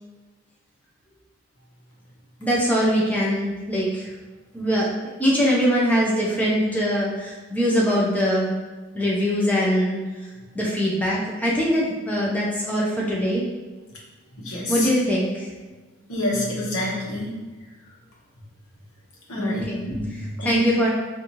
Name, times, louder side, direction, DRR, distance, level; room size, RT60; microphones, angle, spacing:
voice 1, 2.4-4.1 4.5-4.9 5.2-8.5 8.9-10.0 10.5-13.4 14.7-15.5 19.4-19.8 20.4-20.9, equal, 5° left, -5 dB, 0.5 m, -22 dB
voice 2, 14.3-14.9 16.1-17.3 19.3-20.6, left 1 dB, 80° left, -5 dB, 1.0 m, -27 dB
4.0 x 2.6 x 3.0 m, 1.3 s
head